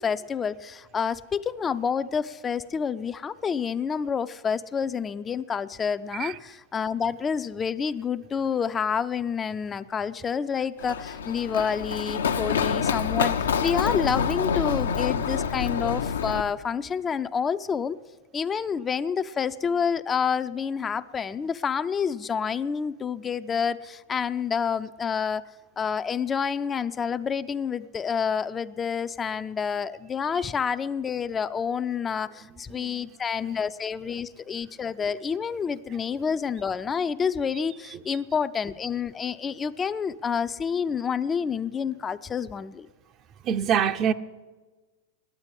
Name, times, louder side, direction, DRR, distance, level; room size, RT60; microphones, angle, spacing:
voice 1, 0.0-18.0 18.3-25.4 25.8-42.9, left 6 dB, 25° left, 0.4 m, -28 dB
Run, 10.8-16.4, left 6 dB, 80° left, 0.6 m, -27 dB
voice 2, 43.4-44.1, right 8 dB, 40° right, 0.6 m, -24 dB
9.7 x 9.6 x 9.8 m
hypercardioid pair, 100°, 0 cm